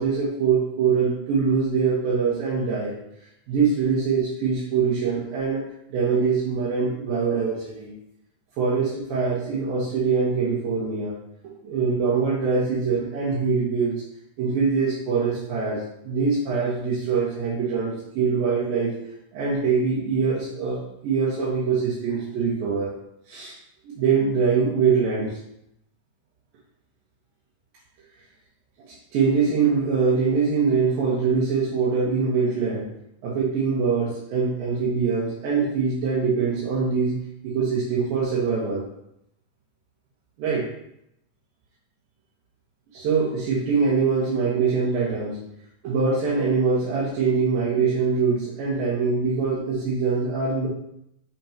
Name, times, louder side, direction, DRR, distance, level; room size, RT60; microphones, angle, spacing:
voice 1, 0.0-3.0 3.5-5.6 5.9-7.9 8.6-11.1 11.6-13.9 14.4-18.9 19.3-22.9 23.3-23.6 23.8-25.4 28.9-32.9 33.2-37.2 37.4-38.8 40.4-40.7 42.9-45.4 45.8-50.7, right 5 dB, 85° right, -8 dB, 3.1 m, -23 dB
6.4 x 5.7 x 2.9 m, 0.79 s
omnidirectional pair, 4.0 m